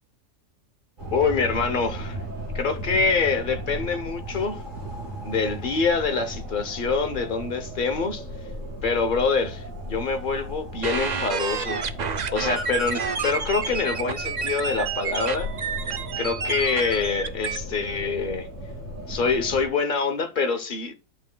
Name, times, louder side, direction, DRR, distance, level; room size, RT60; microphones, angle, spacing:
sound 1, 1.0-19.7, equal, 55° right, 3.9 m, -36 dB
voice 1, 1.1-2.2 2.5-4.6 5.2-8.2 8.8-11.8 12.3-15.5 16.2-18.5 19.1-20.9, left 4 dB, 40° left, 0.8 m, -25 dB
sound 2, 10.8-17.6, right 5 dB, 80° right, 0.4 m, -29 dB
12.0 x 7.1 x 2.3 m
omnidirectional pair, 1.6 m